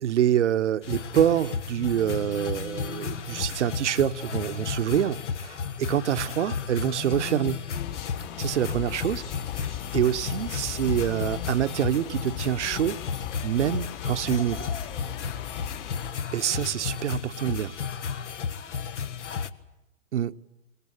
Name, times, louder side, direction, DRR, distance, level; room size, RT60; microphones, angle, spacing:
voice 1, 0.0-7.6 8.4-9.3 9.6-13.0 13.4-14.7 16.3-17.7 20.1-20.4, right 10 dB, 70° right, 1.0 m, -26 dB
sound 1, 0.8-19.5, left 6 dB, 70° left, 1.4 m, -33 dB
sound 2, 7.7-16.1, left 13 dB, 40° left, 3.5 m, -39 dB
24.0 x 21.5 x 8.8 m
hypercardioid pair, 125°, 37 cm